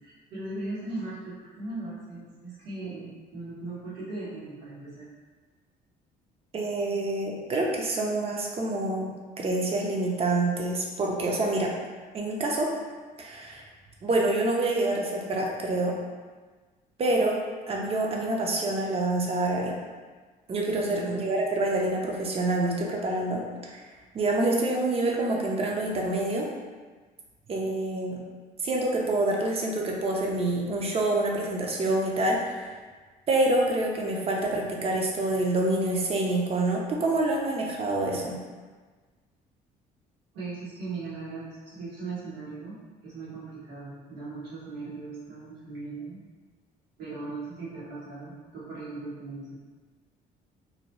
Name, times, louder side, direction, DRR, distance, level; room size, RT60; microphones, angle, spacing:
voice 1, 0.0-5.1 20.9-21.3 40.3-42.8 43.0-46.2 47.0-49.6, right 3 dB, 85° right, -9 dB, 1.3 m, -38 dB
voice 2, 6.5-9.1 9.4-11.7 12.1-12.7 13.2-13.6 14.0-15.9 17.0-17.4 17.7-19.7 20.5-23.8 24.1-26.5 27.5-28.2 28.6-32.7 33.3-38.4, right 2 dB, 35° right, -1 dB, 0.5 m, -27 dB
2.7 x 2.1 x 3.0 m, 1.4 s
cardioid pair, 110°, 17 cm